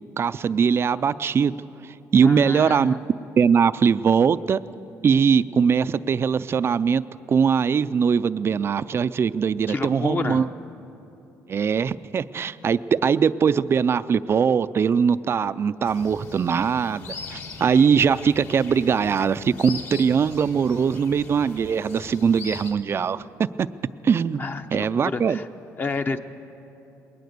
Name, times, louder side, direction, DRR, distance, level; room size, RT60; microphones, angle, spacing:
voice 1, 0.2-1.6 2.1-2.9 3.4-4.6 5.0-7.0 7.3-10.5 11.5-23.7 24.0-24.4 24.7-25.4, right 6 dB, 40° right, 15 dB, 0.5 m, -21 dB
voice 2, 2.2-3.0 9.7-10.5 24.4-25.5 25.8-26.2, left 4 dB, 30° left, 7 dB, 0.9 m, -29 dB
sound 1, 15.8-22.7, left 4 dB, 55° left, 2.5 m, -40 dB
20.5 x 18.5 x 6.7 m, 2.9 s
cardioid pair, 90°, 6 cm